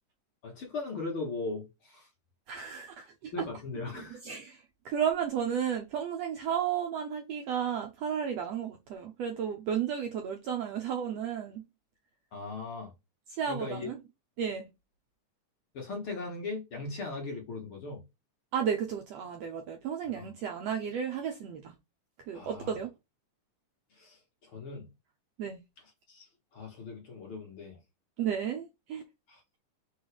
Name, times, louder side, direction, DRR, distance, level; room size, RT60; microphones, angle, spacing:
voice 1, 0.4-2.1 3.3-4.2 12.3-12.9 13.5-13.9 15.7-18.0 20.2-20.3 22.3-22.7 23.9-24.9 26.1-26.3 26.5-27.8 29.3-29.4, left 3 dB, 55° left, 1.7 m, -39 dB
voice 2, 2.5-3.5 4.2-11.6 13.3-14.0 14.4-14.7 18.5-21.7 22.3-22.9 25.4-25.6 28.2-29.0, right 8 dB, 70° right, 1.6 m, -33 dB
4.8 x 4.0 x 5.0 m
omnidirectional pair, 3.8 m